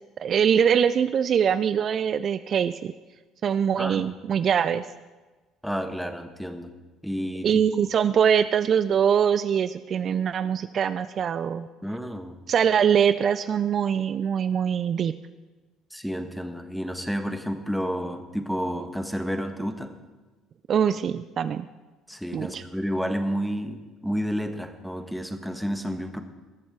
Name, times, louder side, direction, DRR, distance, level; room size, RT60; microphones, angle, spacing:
voice 1, 0.2-2.9 3.4-4.9 7.4-11.7 12.5-15.1 20.7-21.7 22.3-22.6, right 8 dB, 50° right, 14 dB, 0.4 m, -23 dB
voice 2, 5.6-6.7 7.0-7.6 11.8-12.4 15.9-19.9 22.1-26.2, equal, ahead, 7 dB, 1.4 m, -30 dB
20.5 x 7.1 x 4.8 m, 1.2 s
hypercardioid pair, 65°, 0 cm